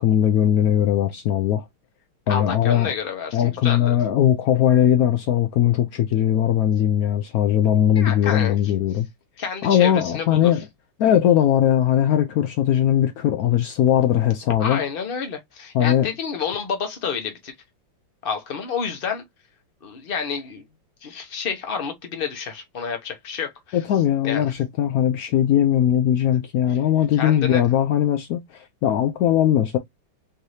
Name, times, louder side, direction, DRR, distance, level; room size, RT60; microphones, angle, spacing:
voice 1, 0.0-1.6 2.3-2.9 3.3-9.1 9.6-10.7 11.0-14.8 15.7-16.1 23.7-29.8, left 10 dB, 80° left, 0.8 m, -19 dB
voice 2, 2.3-4.0 7.9-8.6 9.4-10.4 14.6-17.5 18.2-19.2 19.8-20.6 21.0-23.8 24.2-24.4 27.2-27.6, left 6 dB, 35° left, 0.9 m, -29 dB
4.6 x 2.7 x 3.1 m
omnidirectional pair, 2.1 m